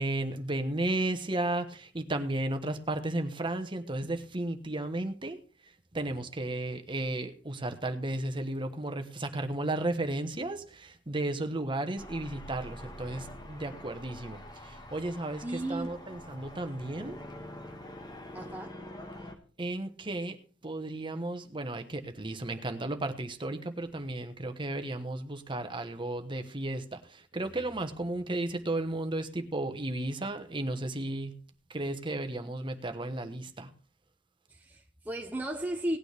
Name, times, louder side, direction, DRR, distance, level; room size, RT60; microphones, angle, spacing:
voice 1, 0.0-5.4 5.9-17.2 19.6-31.4 31.7-33.7, right 2 dB, 25° right, 1.1 m, -34 dB
sound 1, 12.0-19.4, left 1 dB, 20° left, 1.4 m, -45 dB
voice 2, 15.4-15.9 18.3-18.8 34.5-36.0, right 1 dB, 10° right, 0.7 m, -35 dB
18.0 x 9.1 x 3.4 m
head